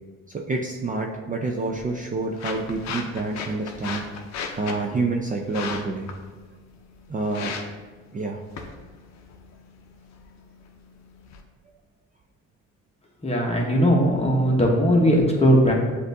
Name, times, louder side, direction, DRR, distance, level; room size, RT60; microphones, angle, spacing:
voice 1, 0.3-4.1 4.6-6.1 7.1-7.5 8.1-8.4, right 3 dB, 25° right, 0 dB, 0.4 m, -28 dB
sound 1, 1.4-11.4, left 5 dB, 65° left, 0.6 m, -38 dB
voice 2, 13.2-15.7, equal, 20° left, -1 dB, 1.0 m, -19 dB
7.6 x 2.6 x 2.6 m, 1.4 s
cardioid pair, 90°, 30 cm